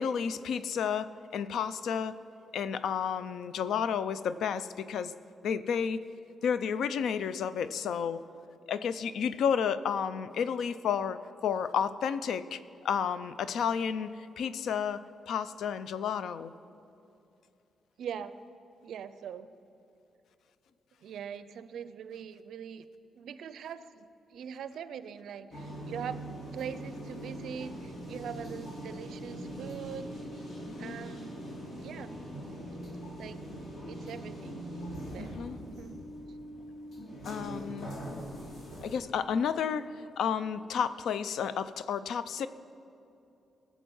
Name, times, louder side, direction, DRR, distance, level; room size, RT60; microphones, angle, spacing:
voice 1, 0.0-2.1 2.5-5.1 5.4-6.0 6.4-8.2 8.7-12.6 12.8-16.5 30.7-30.9 35.2-35.6 37.3-37.9 38.8-42.5, left 7 dB, 80° left, 14 dB, 0.4 m, -31 dB
voice 2, 18.0-18.3 18.8-19.6 21.0-22.9 23.1-26.3 26.5-30.1 30.8-32.2 33.2-33.5 33.8-34.7 35.1-35.4 35.8-36.1, right 8 dB, 80° right, 13 dB, 0.5 m, -42 dB
sound 1, 25.5-39.0, equal, 55° left, 2.9 m, -42 dB
19.0 x 7.2 x 5.4 m, 2.8 s
cardioid pair, 125°, 0 cm